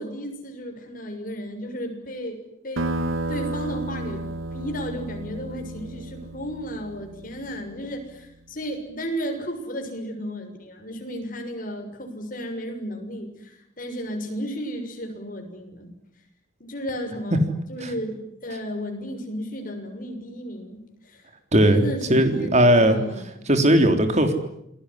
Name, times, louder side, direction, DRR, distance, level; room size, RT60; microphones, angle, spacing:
voice 1, 0.0-2.4 2.6-4.2 4.5-15.9 16.6-17.4 17.7-21.2 21.7-23.5, equal, 45° left, 4 dB, 6.6 m, -34 dB
sound 1, 2.8-7.9, right 1 dB, 85° right, 1.3 m, -32 dB
voice 2, 21.5-23.0 23.5-24.3, right 1 dB, 35° right, 7 dB, 3.6 m, -18 dB
28.5 x 21.0 x 10.0 m, 0.78 s
head